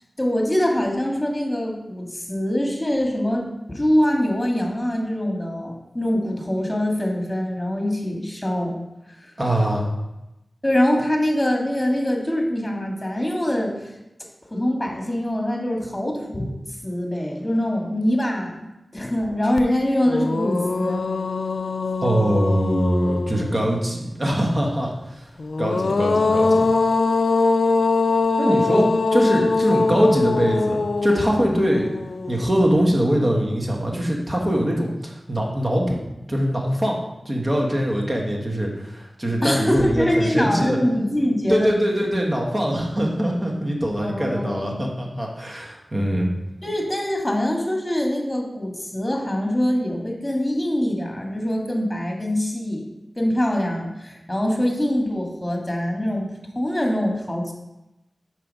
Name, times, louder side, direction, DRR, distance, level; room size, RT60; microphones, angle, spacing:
voice 1, 0.2-8.7 9.1-9.2 10.6-13.7 14.5-16.5 16.8-18.7 18.9-21.0 39.4-41.7 44.0-44.8 46.6-52.9 53.1-57.5, left 1 dB, 20° left, 0 dB, 1.7 m, -23 dB
voice 2, 9.4-9.9 22.0-24.9 25.6-26.7 28.4-31.9 32.3-36.0 36.3-37.0 37.2-40.8 41.5-46.3, equal, 35° right, -1 dB, 1.5 m, -22 dB
sound 1, 19.6-19.7 20.1-23.7 25.4-32.7, left 3 dB, 75° left, 0.3 m, -22 dB
5.5 x 4.7 x 5.4 m, 0.94 s
wide cardioid pair, 50°, 0 cm